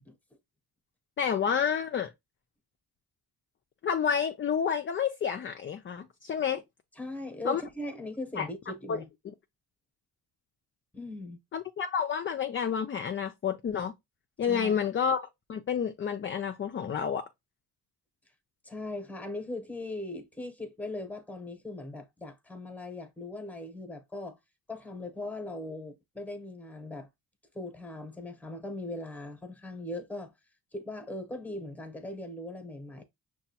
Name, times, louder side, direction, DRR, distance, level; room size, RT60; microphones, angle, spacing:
voice 1, 1.2-2.1 3.8-6.6 7.4-7.6 8.4-8.5 8.9-9.0 11.5-13.9 14.4-15.2 15.5-17.3, left 7 dB, 30° left, 0.4 m, -29 dB
voice 2, 7.0-9.1 10.9-11.4 14.4-14.8 18.6-24.4 24.7-27.1 27.5-30.3 30.7-33.0, left 1 dB, 5° left, 0.9 m, -39 dB
5.8 x 2.3 x 2.8 m
cardioid pair, 95°, 40 cm